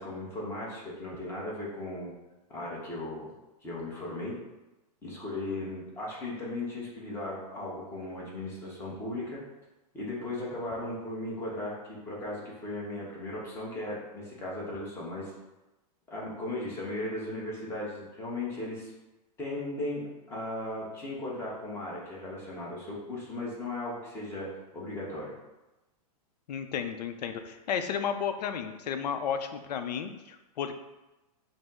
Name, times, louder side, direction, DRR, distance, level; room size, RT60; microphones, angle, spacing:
voice 1, 0.0-2.1 2.5-3.3 3.6-4.3 5.0-9.4 9.9-15.3 16.1-18.9 19.4-24.5 24.7-25.3, left 1 dB, 10° left, -5 dB, 0.8 m, -37 dB
voice 2, 26.5-30.8, left 7 dB, 85° left, 8 dB, 0.5 m, -33 dB
5.1 x 2.0 x 3.5 m, 1.0 s
hypercardioid pair, 155°, 21 cm